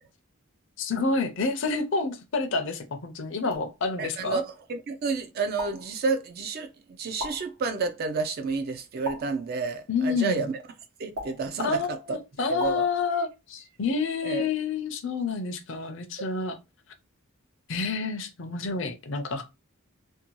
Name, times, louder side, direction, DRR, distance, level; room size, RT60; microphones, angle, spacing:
voice 1, 0.8-4.4 9.9-10.4 11.6-16.6 17.7-19.4, left 4 dB, 55° left, 0.5 m, -28 dB
sound 1, 3.5-3.8 5.6-6.0 7.2-7.6 9.0-9.5 11.2-11.6 12.6-12.9, left 1 dB, 80° right, 0.9 m, -37 dB
voice 2, 4.0-10.5 11.0-12.2 12.5-12.8 14.2-14.5, right 4 dB, 45° right, 0.3 m, -30 dB
2.6 x 2.2 x 2.9 m
head